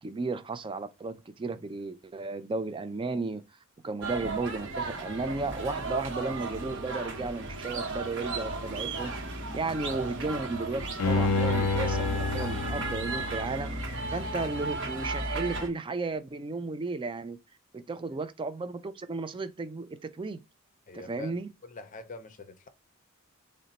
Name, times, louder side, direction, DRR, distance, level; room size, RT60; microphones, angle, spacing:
voice 1, 0.0-3.4 3.8-9.1 9.5-13.7 14.1-17.4 17.7-20.4 20.9-21.5, right 3 dB, 20° right, 0.3 m, -34 dB
sound 1, 4.0-15.7, right 2 dB, 55° right, 1.0 m, -34 dB
Bowed string instrument, 11.0-14.1 14.5-14.6, left 3 dB, 90° left, 0.4 m, -30 dB
voice 2, 20.9-21.3 21.6-22.7, left 2 dB, 35° left, 0.6 m, -44 dB
3.9 x 2.2 x 4.0 m
head